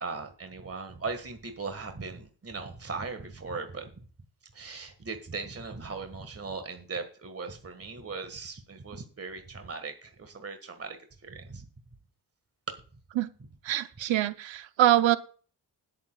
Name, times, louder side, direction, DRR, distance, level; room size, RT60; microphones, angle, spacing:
voice 1, 0.0-3.9 4.5-11.0 11.2-11.7, right 4 dB, 30° right, 7 dB, 1.7 m, -38 dB
voice 2, 13.6-15.2, right 13 dB, 85° right, 13 dB, 0.8 m, -24 dB
20.5 x 7.0 x 2.4 m, 0.40 s
cardioid pair, 55°, 45 cm